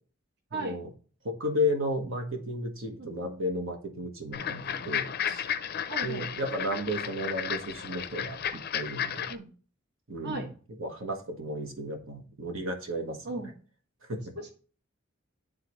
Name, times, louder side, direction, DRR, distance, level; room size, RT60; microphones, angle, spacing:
voice 1, 0.5-0.9 1.2-5.4 6.0-9.3 10.1-10.5 10.8-13.3 14.1-14.3, left 1 dB, 80° right, 4 dB, 1.3 m, -33 dB
sound 1, 4.3-9.3, left 9 dB, 50° left, 0.5 m, -33 dB
voice 2, 5.9-6.3 9.3-9.5 10.2-10.5 13.2-13.5 14.4-14.5, right 3 dB, 55° right, 2 dB, 1.1 m, -36 dB
10.0 x 3.7 x 3.1 m, 0.39 s
head